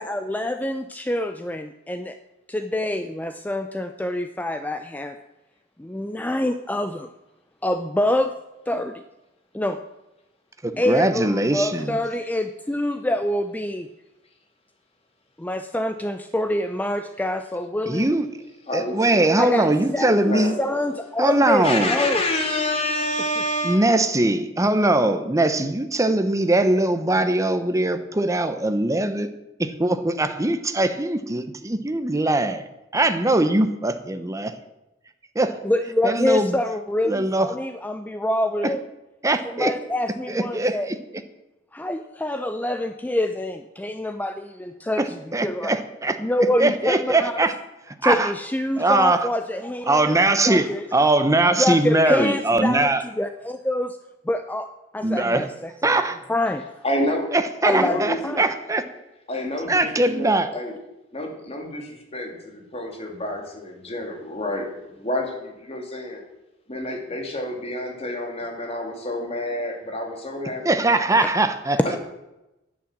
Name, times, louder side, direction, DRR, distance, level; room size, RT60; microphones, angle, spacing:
voice 1, 0.0-2.2 2.5-5.2 5.8-7.1 7.6-8.3 8.7-9.0 9.5-9.8 10.8-13.9 15.4-18.1 19.4-19.7 19.9-22.2 35.6-38.8 39.6-40.9 41.7-45.2 45.4-45.7 46.2-47.4 48.0-50.1 50.4-50.9 51.5-54.0 54.3-54.7 54.9-56.0 56.3-56.7 57.6-58.4 71.2-71.3, left 1 dB, 10° left, 8 dB, 0.5 m, -26 dB
voice 2, 10.6-12.0 17.9-18.3 18.7-20.5 21.2-21.9 23.6-29.3 29.6-32.7 32.9-34.5 35.3-35.6 36.0-36.6 37.1-37.5 38.6-38.7 39.2-39.7 40.3-41.0 45.0-46.2 46.6-47.5 48.0-48.3 48.8-49.3 49.9-53.0 55.0-55.5 55.8-56.2 57.3-58.8 59.7-60.5 70.6-71.8, right 2 dB, 15° right, 8 dB, 0.9 m, -21 dB
voice 3, 18.7-20.8 21.6-23.9 56.8-57.3 57.7-58.4 59.3-60.7 61.1-66.2 66.7-70.8 71.8-72.0, left 1 dB, 30° left, 2 dB, 2.7 m, -29 dB
11.0 x 8.7 x 7.4 m, 0.94 s
head